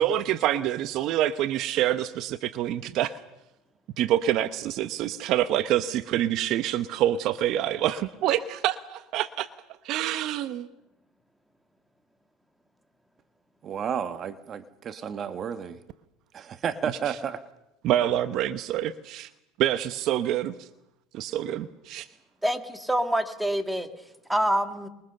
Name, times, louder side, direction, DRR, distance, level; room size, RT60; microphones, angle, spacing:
voice 1, 0.0-3.2 4.0-9.5 9.8-10.7 16.9-17.2 17.8-19.3 19.6-20.7 21.1-22.1, right 12 dB, 55° right, 12 dB, 1.0 m, -26 dB
voice 2, 13.6-15.8 16.3-17.4, right 7 dB, 40° right, 10 dB, 1.4 m, -32 dB
voice 3, 22.4-23.9 24.3-24.9, right 1 dB, 5° right, 7 dB, 2.4 m, -26 dB
27.5 x 22.5 x 6.7 m, 0.89 s
supercardioid pair, 110°, 0 cm